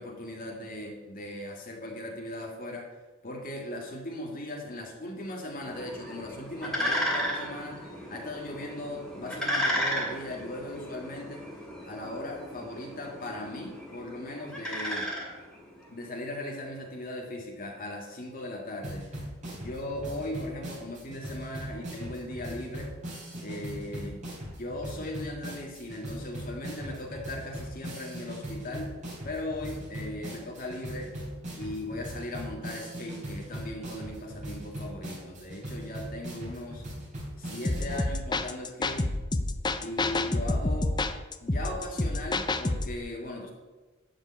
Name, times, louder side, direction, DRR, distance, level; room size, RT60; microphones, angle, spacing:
voice 1, 0.0-2.9 3.2-7.8 8.1-11.4 11.9-15.1 15.9-19.1 19.5-22.9 23.4-24.3 24.6-28.9 29.2-31.1 31.6-36.8 37.4-39.1 39.8-41.0 41.4-43.5, left 1 dB, 45° left, 0 dB, 1.9 m, -38 dB
sound 1, 5.6-15.9, equal, 5° left, 2.6 m, -34 dB
sound 2, 18.8-38.0, equal, 40° right, 3.8 m, -40 dB
sound 3, 37.6-43.0, left 2 dB, 20° left, 0.6 m, -29 dB
12.0 x 5.2 x 8.6 m, 1.2 s
head